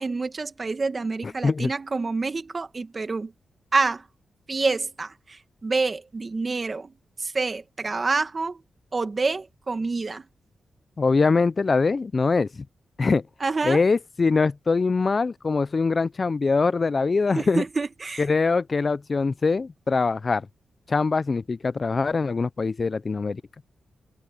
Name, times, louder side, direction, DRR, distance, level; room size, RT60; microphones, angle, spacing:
voice 1, 0.0-3.3 3.7-4.0 4.5-5.1 5.6-6.9 7.2-8.6 8.9-10.2 13.4-13.8 17.4-18.3, right 3 dB, 35° right, 1.8 m, -27 dB
voice 2, 1.2-1.7 11.0-12.5 13.0-13.2 13.6-17.6 18.2-20.5 20.9-23.4, left 4 dB, 40° left, 0.4 m, -23 dB
open air
cardioid pair, 75°, 0 cm